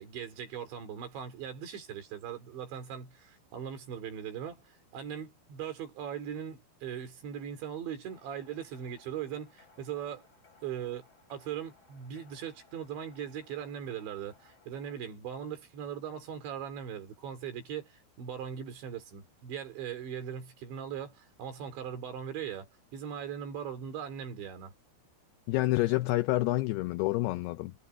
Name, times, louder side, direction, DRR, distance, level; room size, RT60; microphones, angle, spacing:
voice 1, 0.0-10.3 10.6-24.7, right 8 dB, 75° right, 6.0 m, -40 dB
sound 1, 8.1-14.9, left 4 dB, 20° left, 5.4 m, -62 dB
voice 2, 25.5-27.7, left 18 dB, 90° left, 2.3 m, -28 dB
omnidirectional pair, 5.3 m